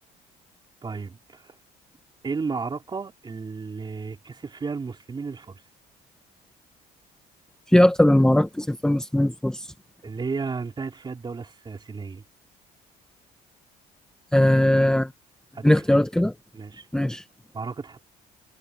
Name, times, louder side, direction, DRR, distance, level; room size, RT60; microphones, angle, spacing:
voice 1, 0.8-1.6 2.2-5.6 10.0-12.2 15.5-15.8 16.5-16.9 17.5-18.0, right 4 dB, 25° right, 3.7 m, -33 dB
voice 2, 7.7-9.7 14.3-15.1 15.6-16.3 16.9-17.2, left 1 dB, 5° left, 1.3 m, -19 dB
cardioid pair, 110°, 17 cm